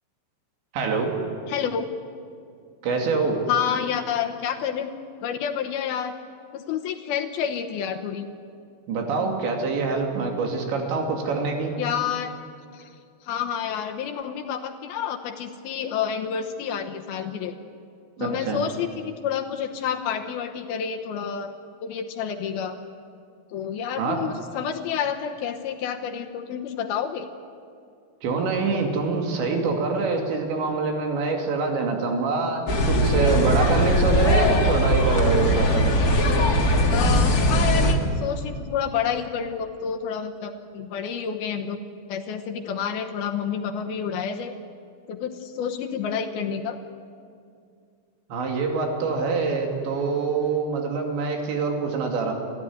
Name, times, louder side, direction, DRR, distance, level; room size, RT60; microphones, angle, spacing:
voice 1, 0.7-1.1 2.8-3.4 8.9-11.7 18.2-18.6 24.0-24.2 28.2-35.9 48.3-52.3, right 4 dB, 85° right, 2 dB, 4.9 m, -25 dB
voice 2, 1.5-1.9 3.5-4.9 5.2-6.1 6.5-8.3 11.8-12.3 12.7-12.9 13.2-17.6 18.2-21.5 21.8-22.8 23.5-27.3 36.9-41.8 42.1-44.5 45.1-46.8, left 8 dB, 70° left, 4 dB, 2.7 m, -29 dB
sound 1, 32.7-37.9, equal, 45° left, 1.2 m, -20 dB
29.0 x 14.5 x 9.5 m, 2.3 s
omnidirectional pair, 5.0 m